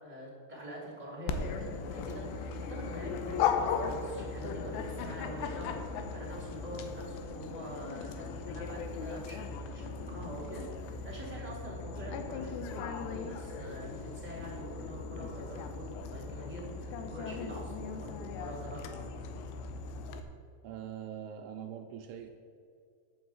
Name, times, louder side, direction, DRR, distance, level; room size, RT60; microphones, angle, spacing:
voice 1, 0.0-19.1, right 1 dB, 15° right, -4 dB, 1.9 m, -45 dB
Dog, 1.3-20.2, left 5 dB, 90° left, 3.1 m, -37 dB
voice 2, 20.6-22.3, right 9 dB, 80° right, 3 dB, 2.4 m, -43 dB
10.0 x 7.3 x 7.8 m, 2.4 s
omnidirectional pair, 4.8 m